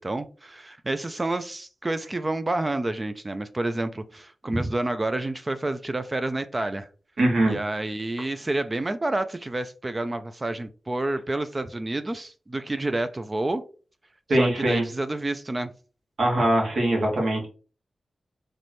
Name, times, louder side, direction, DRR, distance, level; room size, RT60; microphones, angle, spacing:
voice 1, 0.0-6.9 7.5-13.6 14.3-15.7, right 2 dB, 20° right, 11 dB, 0.3 m, -29 dB
voice 2, 7.2-7.6 14.3-14.8 16.2-17.5, right 1 dB, 70° right, -1 dB, 1.7 m, -22 dB
4.2 x 3.1 x 3.1 m, 0.36 s
wide cardioid pair, 135°, 0 cm